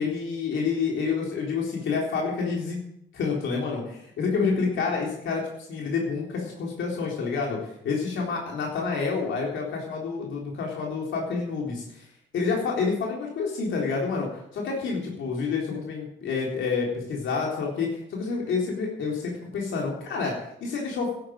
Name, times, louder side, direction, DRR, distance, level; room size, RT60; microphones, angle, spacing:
voice 1, 0.0-2.8 3.1-12.0 12.3-20.3 20.6-21.1, left 5 dB, 75° left, -1 dB, 3.9 m, -28 dB
11.5 x 10.5 x 7.7 m, 0.76 s
cardioid pair, 90°, 20 cm